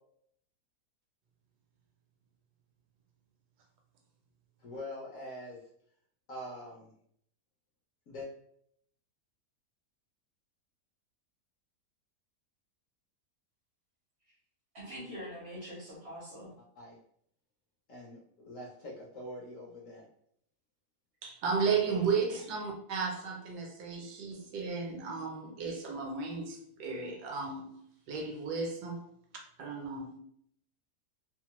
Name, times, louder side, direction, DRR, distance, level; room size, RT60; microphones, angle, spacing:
voice 1, 4.6-5.6 6.3-6.9 8.1-8.3 15.0-15.2 16.6-16.9 17.9-20.1 21.8-22.0, left 1 dB, 60° left, -3 dB, 0.9 m, -44 dB
voice 2, 14.7-16.5, equal, 55° right, -4 dB, 0.8 m, -44 dB
voice 3, 21.2-29.0 29.6-30.2, right 5 dB, 75° right, 2 dB, 1.2 m, -34 dB
2.9 x 2.0 x 2.9 m, 0.67 s
omnidirectional pair, 1.8 m